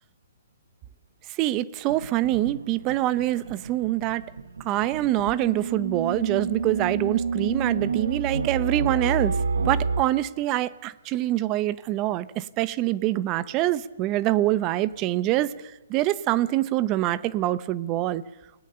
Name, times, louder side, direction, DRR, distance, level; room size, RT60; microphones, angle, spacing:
voice 1, 1.4-4.2 4.6-9.4 9.6-15.5 15.9-18.2, right 15 dB, 25° right, 18 dB, 0.8 m, -25 dB
sound 1, 1.9-10.0, right 5 dB, 85° right, 1.6 m, -29 dB
28.5 x 19.5 x 6.9 m, 1.1 s
hypercardioid pair, 145°, 0 cm